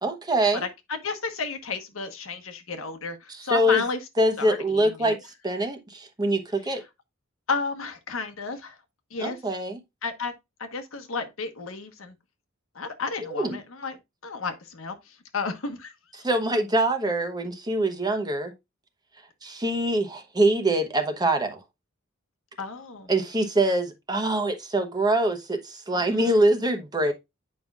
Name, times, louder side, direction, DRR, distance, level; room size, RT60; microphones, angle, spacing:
voice 1, 0.0-0.6 3.4-3.8 4.2-5.2 5.4-6.8 9.2-9.8 13.2-13.6 16.2-18.5 19.4-21.6 23.1-27.1, right 1 dB, 20° right, 1.0 m, -24 dB
voice 2, 0.6-4.0 4.4-5.2 6.7-6.8 7.5-8.8 9.1-9.4 10.0-10.3 10.6-12.1 12.7-14.0 14.2-15.9 22.6-23.1 25.9-26.4, left 4 dB, 80° left, 1.2 m, -32 dB
8.6 x 5.4 x 2.4 m
head